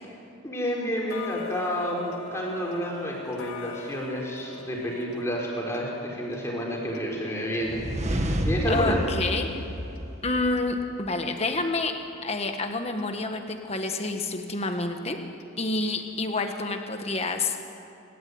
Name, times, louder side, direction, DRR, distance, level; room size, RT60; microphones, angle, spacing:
voice 1, 0.4-9.0, equal, 15° left, -3 dB, 4.6 m, -30 dB
Tick-tock, 1.1-11.9 12.3-12.4 13.0-13.1 13.6-13.7 14.2-14.3 14.8-14.9 15.4-15.5 16.0-16.1, left 4 dB, 85° left, 2.2 m, -44 dB
sound 1, 7.6-10.6, equal, 30° right, 1.7 m, -29 dB
voice 2, 8.7-9.5 10.2-11.9 12.2-15.2 15.6-17.6, left 3 dB, 30° left, 5 dB, 1.5 m, -28 dB
27.0 x 13.0 x 9.5 m, 2.9 s
head